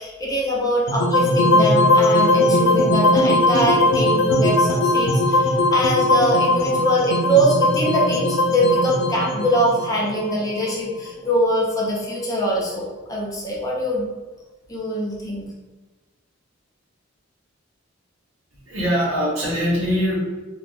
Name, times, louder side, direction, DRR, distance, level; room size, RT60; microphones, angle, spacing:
voice 1, 0.0-14.1 14.7-15.5, right 1 dB, 15° left, -4 dB, 0.6 m, -23 dB
sound 1, 0.9-11.1, left 1 dB, 80° left, 0.6 m, -19 dB
voice 2, 18.5-20.2, equal, 90° right, -6 dB, 1.3 m, -22 dB
3.4 x 2.4 x 2.5 m, 1.2 s
head